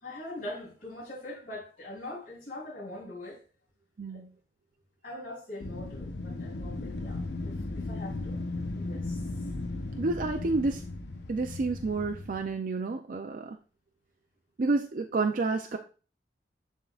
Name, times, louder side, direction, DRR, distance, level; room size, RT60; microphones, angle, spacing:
voice 1, 0.0-3.4 4.1-4.3 5.0-8.4 8.7-9.3, left 1 dB, 50° left, 3.1 m, -42 dB
Wind, 5.6-12.5, left 2 dB, 75° left, 0.8 m, -36 dB
voice 2, 10.0-10.8 11.3-13.6 14.6-15.8, right 3 dB, 50° right, 0.4 m, -29 dB
11.0 x 3.7 x 2.3 m
head